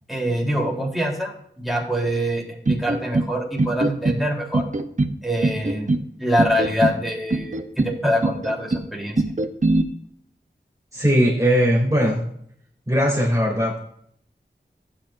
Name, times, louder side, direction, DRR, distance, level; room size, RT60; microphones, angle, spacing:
voice 1, 0.1-4.6 5.2-5.9 6.2-9.1, equal, ahead, -3 dB, 3.6 m, -24 dB
sound 1, 2.7-3.3 3.6-4.2 4.5-5.1 5.4-6.0 6.4-7.0 7.3-7.9 8.2-8.8 9.2-9.8, right 2 dB, 40° right, 0.8 m, -21 dB
voice 2, 10.9-12.2 12.9-13.8, equal, 15° right, -4 dB, 2.9 m, -19 dB
15.5 x 9.0 x 2.6 m, 0.67 s
wide cardioid pair, 55°, 19 cm